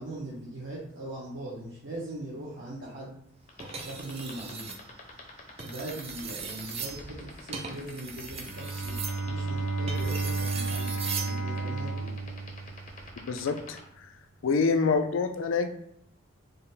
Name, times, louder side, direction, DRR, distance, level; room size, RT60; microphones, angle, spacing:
voice 1, 0.0-3.2 3.8-4.7 5.6-9.0 9.2-12.1, right 1 dB, 65° right, -6 dB, 0.8 m, -40 dB
sound 1, 3.5-13.8, left 5 dB, 40° left, 0.7 m, -46 dB
sound 2, 3.6-4.8 5.5-11.4 12.8-13.1, right 5 dB, 30° right, 0.4 m, -39 dB
Bowed string instrument, 8.3-13.3, right 3 dB, 85° right, 1.2 m, -32 dB
voice 2, 13.2-14.1 14.4-15.7, left 4 dB, 75° left, 7 dB, 0.4 m, -27 dB
3.9 x 2.1 x 3.9 m, 0.72 s
head